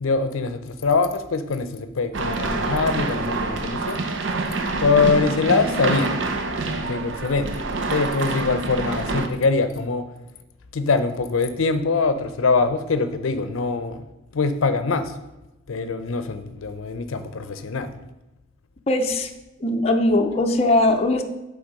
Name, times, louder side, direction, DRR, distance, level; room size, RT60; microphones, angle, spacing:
voice 1, 0.0-4.0 4.8-6.4 6.6-7.6 7.9-10.1 10.7-14.0 14.3-15.1 15.7-17.9, left 4 dB, 80° left, 10 dB, 0.6 m, -23 dB
sound 1, 2.1-9.3, right 3 dB, 65° right, 0.7 m, -26 dB
voice 2, 18.9-19.3 19.6-21.2, left 2 dB, 30° left, 4 dB, 0.5 m, -20 dB
8.1 x 3.5 x 5.2 m, 1.0 s
head